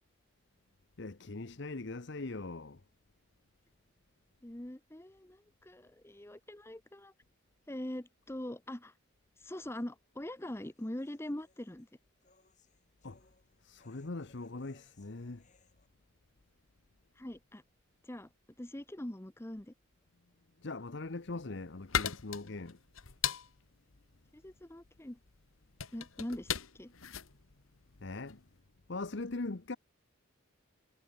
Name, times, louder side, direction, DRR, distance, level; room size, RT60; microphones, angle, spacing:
voice 1, 1.0-2.8 13.0-13.3 13.6-15.5 20.6-22.8 28.0-28.4 28.9-29.8, left 3 dB, 55° left, 0.9 m, -41 dB
voice 2, 4.4-7.1 7.7-8.9 9.4-11.9 17.2-17.6 18.0-18.3 18.6-19.7 24.3-25.2 25.9-26.9, left 1 dB, 10° left, 0.7 m, -43 dB
sound 1, 9.5-15.9, left 3 dB, 35° left, 5.1 m, -69 dB
sound 2, 21.0-28.5, left 8 dB, 80° left, 1.6 m, -39 dB
head